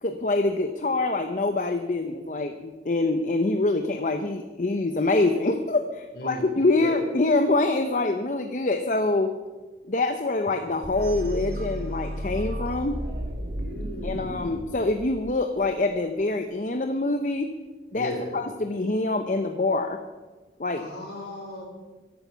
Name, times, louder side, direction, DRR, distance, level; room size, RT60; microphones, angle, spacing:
voice 1, 0.0-9.3 9.9-13.0 14.0-17.5 17.9-20.0 20.6-20.9, left 2 dB, 45° left, 7 dB, 0.7 m, -25 dB
voice 2, 6.1-7.0 13.5-14.5 17.9-18.3 20.7-21.6, left 1 dB, 60° left, 2 dB, 3.8 m, -36 dB
sound 1, 10.8-15.7, equal, 60° right, 1.8 m, -33 dB
14.0 x 11.5 x 5.7 m, 1.3 s
head